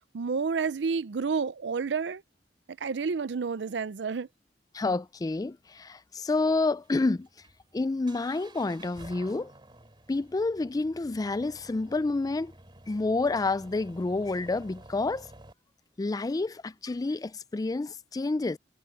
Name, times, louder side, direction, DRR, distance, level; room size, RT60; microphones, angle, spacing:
voice 1, 0.1-2.2 2.8-4.3, right 5 dB, 80° right, 0.5 m, -30 dB
voice 2, 4.7-7.3 7.7-9.5 10.1-12.5 12.9-15.3 16.0-18.6, left 3 dB, 20° left, 0.4 m, -29 dB
sound 1, 6.4-15.5, right 1 dB, 30° right, 3.2 m, -52 dB
head